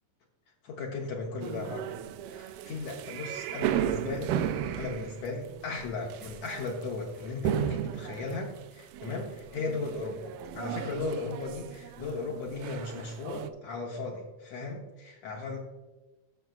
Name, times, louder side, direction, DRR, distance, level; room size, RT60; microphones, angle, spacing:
voice 1, 0.6-1.9 2.3-4.3 4.8-15.6, left 3 dB, 70° left, -1 dB, 1.8 m, -36 dB
sound 1, 1.4-13.5, right 10 dB, 80° right, 2.1 m, -35 dB
17.0 x 6.4 x 2.3 m, 1.1 s
omnidirectional pair, 3.7 m